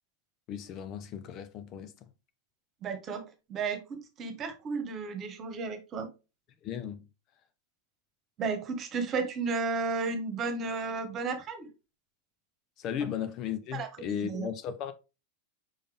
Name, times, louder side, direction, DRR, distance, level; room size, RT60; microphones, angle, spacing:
voice 1, 0.5-2.1 6.6-7.1 12.8-14.9, left 9 dB, 35° left, 0.7 m, -36 dB
voice 2, 2.8-6.1 8.4-11.7 13.7-14.5, right 4 dB, 30° right, 1.4 m, -33 dB
5.5 x 5.1 x 3.4 m
figure-of-eight pair, 90°, 0 cm